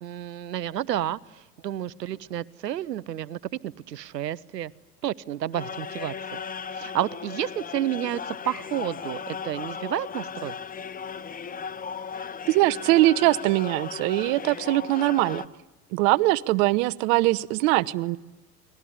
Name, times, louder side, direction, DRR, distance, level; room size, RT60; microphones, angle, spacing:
voice 1, 0.0-4.7 5.0-6.4 6.7-10.5, right 12 dB, 85° right, 20 dB, 0.9 m, -31 dB
sound 1, 5.5-15.5, left 6 dB, 20° left, 0.9 m, -36 dB
voice 2, 12.5-15.4 15.9-18.2, right 18 dB, 55° right, 15 dB, 1.0 m, -22 dB
29.5 x 21.0 x 9.5 m, 1.0 s
hypercardioid pair, 85°, 48 cm